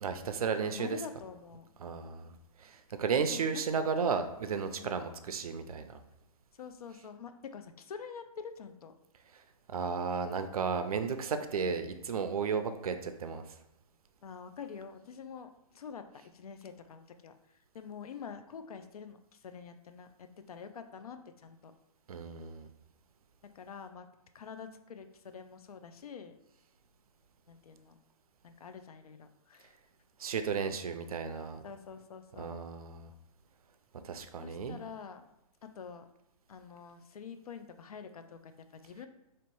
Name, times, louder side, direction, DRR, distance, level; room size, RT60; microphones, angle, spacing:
voice 1, 0.0-1.0 1.8-2.3 2.6-6.0 9.7-13.4 22.1-22.7 30.2-31.6 32.4-33.1 34.0-34.8, right 5 dB, 70° right, 8 dB, 0.5 m, -34 dB
voice 2, 0.6-2.2 3.3-3.8 4.8-5.0 6.6-8.9 14.2-16.1 16.3-17.3 17.7-21.7 23.5-24.1 24.3-26.4 27.5-28.0 28.4-29.7 31.6-32.5 34.4-35.2 35.6-36.1 36.5-39.1, left 6 dB, 70° left, 9 dB, 0.5 m, -47 dB
3.1 x 2.9 x 4.5 m, 0.90 s
hypercardioid pair, 170°, 19 cm